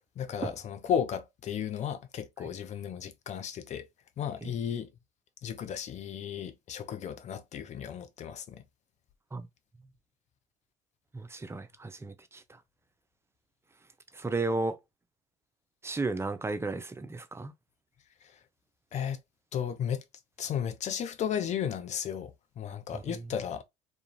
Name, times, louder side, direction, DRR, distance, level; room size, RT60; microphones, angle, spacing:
voice 1, 0.2-3.9 4.2-4.9 5.4-8.6 18.9-19.2 19.5-20.0 20.4-23.6, left 8 dB, 45° left, 0.5 m, -34 dB
voice 2, 11.1-12.4 14.1-14.8 15.8-17.5 22.9-23.2, right 3 dB, 15° right, 0.5 m, -34 dB
2.4 x 2.3 x 3.0 m
hypercardioid pair, 70°, 17 cm